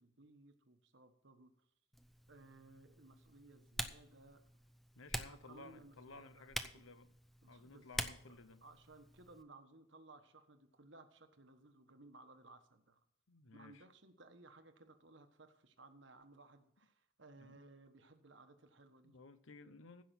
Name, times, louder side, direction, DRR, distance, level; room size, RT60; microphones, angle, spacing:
voice 1, 0.0-1.5 2.3-4.4 5.3-6.9 7.4-13.0 13.5-19.2, right 2 dB, 60° right, 1.3 m, -61 dB
Typing, 1.9-9.4, equal, ahead, 0.6 m, -47 dB
voice 2, 4.9-7.1 7.5-8.6 13.3-13.9 17.4-17.6 19.0-20.0, left 3 dB, 75° left, 1.0 m, -57 dB
15.5 x 6.0 x 6.0 m
head